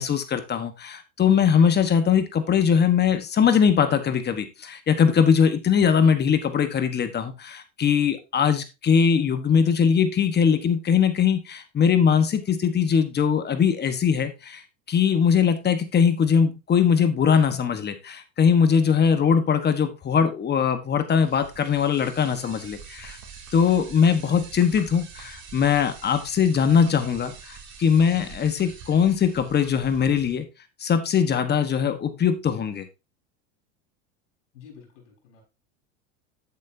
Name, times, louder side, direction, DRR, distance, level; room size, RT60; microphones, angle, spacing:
voice 1, 0.0-14.6 14.9-23.2 23.5-30.5 30.8-32.8, left 7 dB, 30° left, 9 dB, 1.3 m, -21 dB
sound 1, 21.2-30.3, right 6 dB, 50° right, 3.1 m, -45 dB
voice 2, 34.5-35.4, left 7 dB, 85° left, 1 dB, 4.3 m, -49 dB
9.4 x 8.2 x 2.7 m, 0.26 s
supercardioid pair, 110°, 36 cm